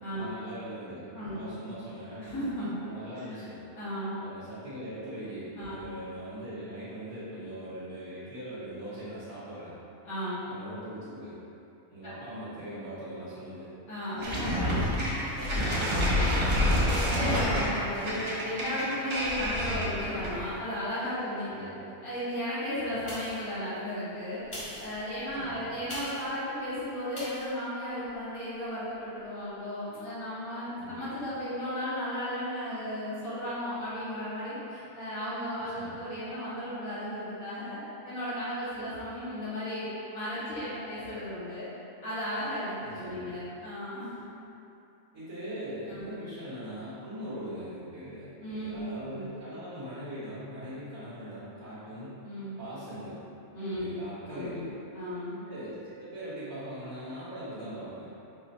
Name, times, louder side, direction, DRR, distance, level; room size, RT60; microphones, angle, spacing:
voice 1, 0.1-2.3 2.8-3.6 4.2-9.7 10.5-11.4 11.9-13.7 14.2-14.8 15.4-15.7 16.0-16.4 18.0-18.3 21.5-21.8 25.4-25.7 30.8-31.0 35.6-36.0 42.8-43.4 45.1-52.2 52.6-53.2 53.7-54.7 55.4-58.1, right 1 dB, 80° right, -13 dB, 1.7 m, -41 dB
voice 2, 1.1-1.5 2.2-2.7 3.2-3.4 3.7-4.2 5.6-6.0 10.0-10.5 12.0-12.1 13.9-14.7 15.5-15.6 17.0-21.7 22.0-24.4 24.8-37.8 38.0-41.7 42.0-44.2 45.9-46.1 48.4-49.4 52.2-52.6 53.5-54.0 54.3-55.4, equal, 80° left, -14 dB, 1.9 m, -35 dB
sound 1, 14.2-20.5, left 1 dB, 35° right, 0.5 m, -28 dB
sound 2, 23.0-23.6 24.4-26.3 27.1-27.5 28.0-28.1, left 1 dB, 25° left, 0.9 m, -41 dB
5.0 x 2.6 x 4.1 m, 2.8 s
omnidirectional pair, 1.5 m